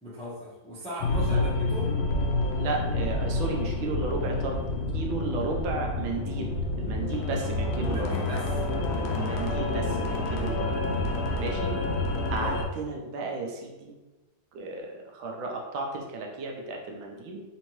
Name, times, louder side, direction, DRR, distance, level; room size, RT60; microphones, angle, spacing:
voice 1, 0.0-2.0 7.8-8.5 12.4-12.6, equal, 5° left, -7 dB, 0.5 m, -37 dB
sound 1, 1.0-12.6, left 2 dB, 80° left, 1.4 m, -28 dB
voice 2, 2.6-4.6 4.9-8.1 9.1-10.7 11.4-11.7 12.3-13.9 14.5-17.4, right 3 dB, 85° right, 1 dB, 1.4 m, -34 dB
4.3 x 2.8 x 3.0 m, 1.1 s
omnidirectional pair, 2.2 m